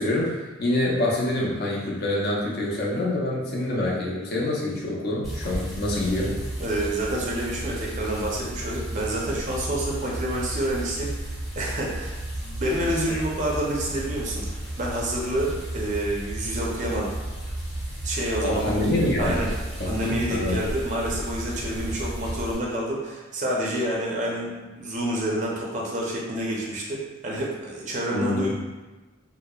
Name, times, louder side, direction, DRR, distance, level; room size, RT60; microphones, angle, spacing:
voice 1, 0.0-6.3 13.1-13.2 18.4-19.5 19.8-20.6 28.1-28.5, left 1 dB, 50° left, -4 dB, 0.5 m, -26 dB
sound 1, 5.2-22.5, right 1 dB, ahead, 0.7 m, -33 dB
voice 2, 6.6-17.1 18.0-18.6 19.2-19.5 19.8-28.5, right 1 dB, 35° right, -3 dB, 0.4 m, -28 dB
2.7 x 2.0 x 2.3 m, 1.2 s
head